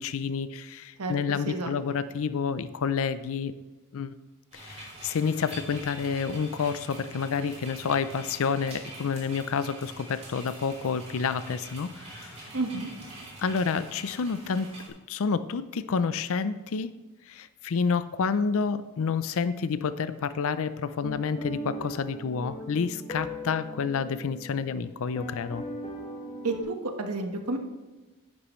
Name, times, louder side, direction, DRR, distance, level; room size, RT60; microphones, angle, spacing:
voice 1, 0.0-3.5 3.9-4.1 4.5-12.3 13.4-14.7 15.1-16.9 17.3-25.6, left 5 dB, 65° left, 14 dB, 0.4 m, -29 dB
voice 2, 1.0-2.0 12.5-12.9 26.4-27.6, right 2 dB, 90° right, 4 dB, 1.3 m, -31 dB
sound 1, 4.5-14.9, right 1 dB, 30° right, 3.1 m, -45 dB
sound 2, 21.0-26.6, equal, 25° left, 1.6 m, -39 dB
10.5 x 9.9 x 3.1 m, 1.2 s
head